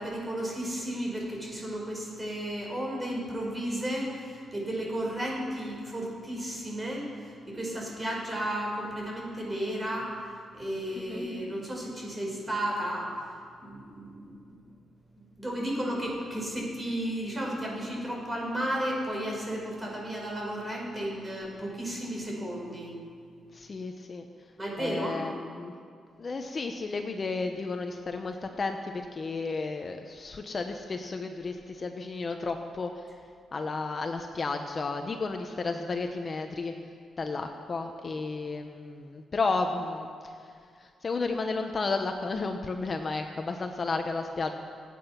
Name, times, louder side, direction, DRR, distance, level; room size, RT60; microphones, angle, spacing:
voice 1, 0.0-10.1 10.5-13.1 13.6-14.3 15.1-22.9 24.6-25.2, right 1 dB, 20° right, -2 dB, 5.2 m, -33 dB
voice 2, 23.5-24.3 24.8-25.7 26.2-32.9 33.5-36.7 37.2-40.3 40.8-44.5, left 3 dB, 35° left, 5 dB, 0.9 m, -32 dB
26.5 x 8.9 x 6.0 m, 2.2 s
cardioid pair, 105°, 0 cm